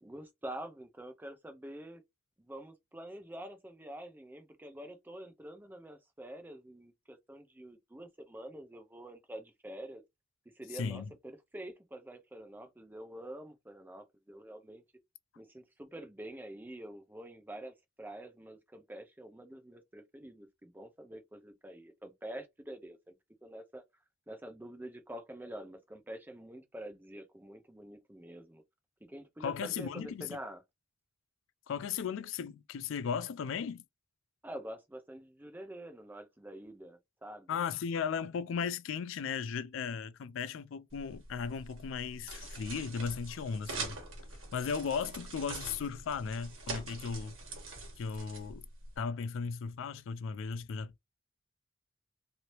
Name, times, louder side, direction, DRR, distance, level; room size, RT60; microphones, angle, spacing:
voice 1, 0.0-2.0 2.4-10.0 10.5-14.8 15.4-23.2 23.4-23.8 24.3-28.6 29.0-30.6 34.4-37.5, right 1 dB, 10° right, 0.5 m, -47 dB
voice 2, 10.7-11.1 29.4-30.4 31.7-33.8 37.5-44.0 44.5-47.4 48.0-48.6 49.0-50.9, left 6 dB, 70° left, 0.3 m, -36 dB
sound 1, 40.9-49.0, right 3 dB, 80° right, 1.3 m, -44 dB
3.1 x 2.7 x 2.9 m
head